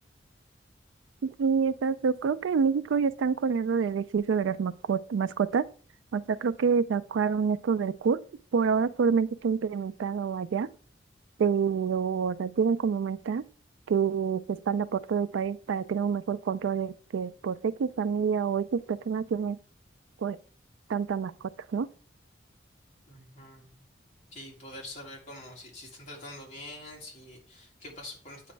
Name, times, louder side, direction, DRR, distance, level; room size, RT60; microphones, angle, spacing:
voice 1, 1.2-5.7 6.1-8.2 8.5-10.7 11.4-13.4 13.9-19.6 20.2-20.4 20.9-21.3 21.7-21.9, right 6 dB, 85° right, 0.3 m, -27 dB
voice 2, 23.1-23.7 24.3-28.5, left 1 dB, 40° left, 2.0 m, -45 dB
8.4 x 3.1 x 4.5 m
head